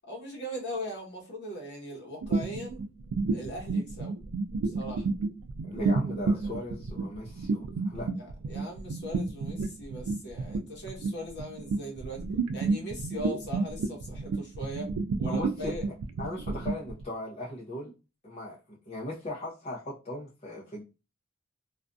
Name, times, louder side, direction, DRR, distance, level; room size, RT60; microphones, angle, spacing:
voice 1, 0.0-2.8 3.3-4.2 4.6-5.0 6.4-6.5 8.2-12.3 12.5-14.9 15.2-15.9, equal, 55° left, 1.0 m, -39 dB
sound 1, 2.2-17.0, right 3 dB, 80° right, 0.4 m, -31 dB
voice 2, 5.6-8.1 15.3-15.7 16.2-17.9 18.2-20.8, left 1 dB, 30° left, 0.6 m, -38 dB
2.6 x 2.4 x 2.2 m
head